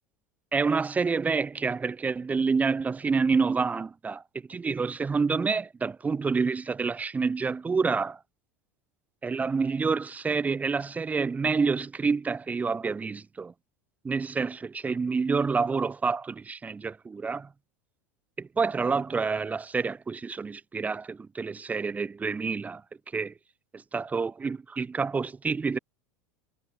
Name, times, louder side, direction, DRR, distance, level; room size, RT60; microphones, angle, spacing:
voice 1, 0.5-4.2 4.5-8.2 9.2-13.5 14.0-17.5 18.4-22.8 23.1-23.3 23.9-25.8, right 4 dB, 20° right, 1.1 m, -28 dB
figure-of-eight pair, 80°, 8 cm